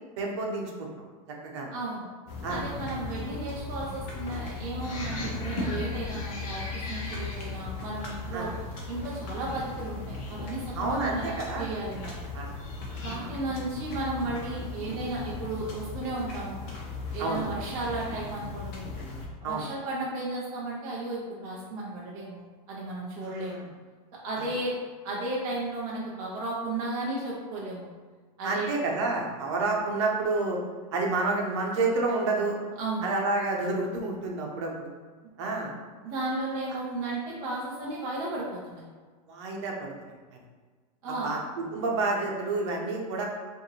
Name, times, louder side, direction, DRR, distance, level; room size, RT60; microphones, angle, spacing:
voice 1, 0.2-0.9 1.4-1.7 2.4-2.6 8.3-8.5 10.8-11.8 12.3-12.5 12.9-13.3 17.2-17.4 19.4-19.7 23.2-23.7 24.4-24.5 28.4-30.6 30.9-32.6 33.0-34.9 35.4-35.7 39.3-40.1 41.2-43.3, right 3 dB, 45° right, 0 dB, 0.7 m, -29 dB
voice 2, 1.7-2.1 2.5-8.5 8.9-12.2 13.0-16.6 17.1-18.9 19.4-23.7 24.2-24.8 25.0-27.9 28.4-28.7 32.8-33.1 36.0-38.8 41.0-41.4, right 2 dB, 15° right, -6 dB, 0.3 m, -34 dB
sound 1, 2.3-19.3, left 3 dB, 30° left, 0.7 m, -37 dB
sound 2, 4.8-13.2, left 2 dB, 55° left, 1.2 m, -43 dB
4.7 x 2.6 x 3.1 m, 1.4 s
supercardioid pair, 175°, 20 cm